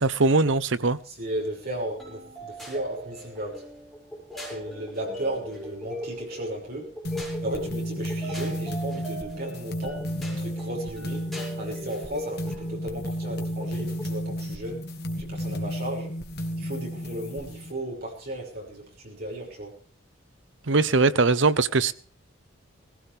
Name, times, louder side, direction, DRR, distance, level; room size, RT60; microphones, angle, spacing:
voice 1, 0.0-1.0 20.7-21.9, right 3 dB, 65° right, 15 dB, 0.8 m, -21 dB
voice 2, 1.0-3.7 4.4-6.9 7.4-10.0 10.3-11.3 11.6-14.8 15.2-16.1 16.6-19.8, right 1 dB, 50° right, -1 dB, 6.0 m, -35 dB
sound 1, 2.0-14.1, equal, ahead, 6.3 m, -39 dB
sound 2, 7.0-17.7, equal, 50° left, 1.8 m, -33 dB
18.5 x 16.0 x 3.5 m, 0.41 s
head